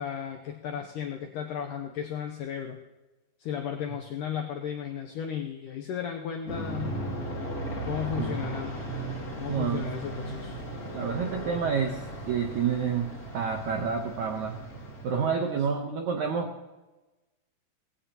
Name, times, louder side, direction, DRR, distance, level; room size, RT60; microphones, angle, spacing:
voice 1, 0.0-2.8 3.4-7.0 7.8-8.8 9.4-10.6 15.1-15.4, left 8 dB, 85° left, 4 dB, 1.8 m, -35 dB
Aircraft, 6.5-15.5, right 1 dB, 25° left, 2.2 m, -36 dB
voice 2, 9.5-9.8 10.9-12.0 12.3-13.1 13.3-14.6 15.0-16.5, right 6 dB, 75° right, 2 dB, 1.7 m, -28 dB
19.5 x 16.0 x 2.9 m, 1.1 s
omnidirectional pair, 4.8 m